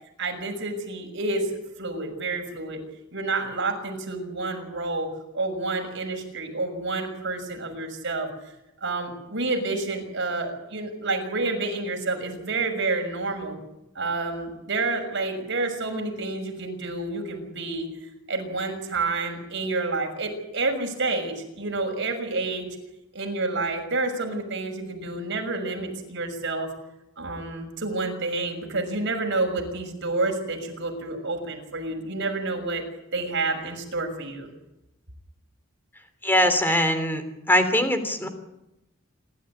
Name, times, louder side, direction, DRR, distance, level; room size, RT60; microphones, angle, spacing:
voice 1, 0.2-1.5 1.8-2.8 3.1-8.3 8.8-13.6 13.9-17.9 18.3-22.7 23.1-26.7 27.2-32.8 33.1-34.5, right 3 dB, 60° right, 3 dB, 6.2 m, -29 dB
voice 2, 36.2-37.2 37.5-38.3, left 1 dB, 10° left, 8 dB, 3.2 m, -21 dB
27.0 x 13.0 x 9.9 m, 0.91 s
head